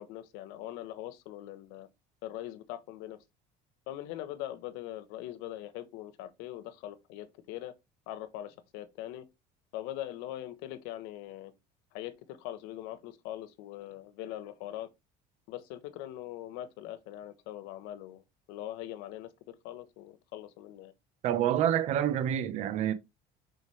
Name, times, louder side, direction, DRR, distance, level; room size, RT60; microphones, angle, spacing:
voice 1, 0.0-1.9 2.2-3.2 3.9-7.7 8.1-9.2 9.7-11.5 11.9-14.9 15.5-20.9, left 13 dB, 90° left, 1.2 m, -42 dB
voice 2, 21.2-22.9, right 10 dB, 45° right, 0.8 m, -27 dB
6.6 x 5.1 x 3.3 m
cardioid pair, 170°, 16 cm